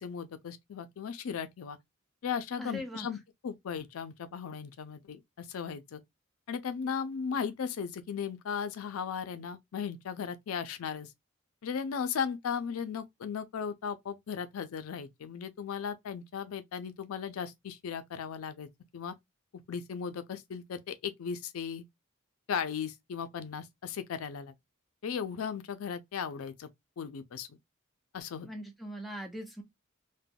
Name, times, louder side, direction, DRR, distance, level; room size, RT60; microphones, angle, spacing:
voice 1, 0.0-1.8 2.2-3.2 3.4-6.0 6.5-11.1 11.6-19.1 19.7-21.8 22.5-24.5 25.0-26.7 27.0-27.6 28.1-28.5, left 7 dB, 85° left, 0.4 m, -36 dB
voice 2, 2.6-3.1 28.4-29.6, equal, ahead, 0.5 m, -40 dB
3.3 x 2.1 x 2.2 m
head